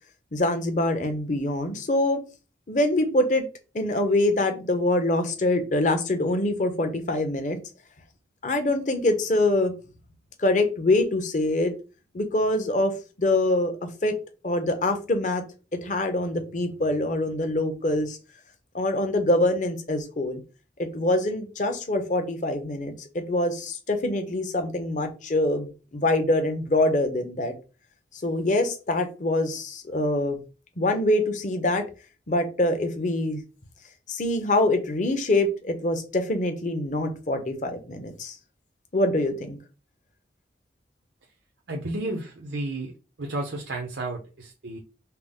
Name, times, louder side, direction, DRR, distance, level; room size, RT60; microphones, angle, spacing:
voice 1, 0.3-2.2 2.7-3.5 3.7-7.6 8.4-9.7 10.4-11.7 12.1-12.9 13.2-14.1 14.4-15.4 15.8-18.2 18.7-20.4 20.8-27.5 28.2-30.4 30.8-31.8 32.3-33.4 34.1-38.3 38.9-39.6, left 1 dB, 45° left, 6 dB, 0.8 m, -24 dB
voice 2, 41.7-44.8, right 2 dB, 90° right, 1 dB, 0.7 m, -32 dB
5.7 x 2.0 x 3.6 m, 0.32 s
head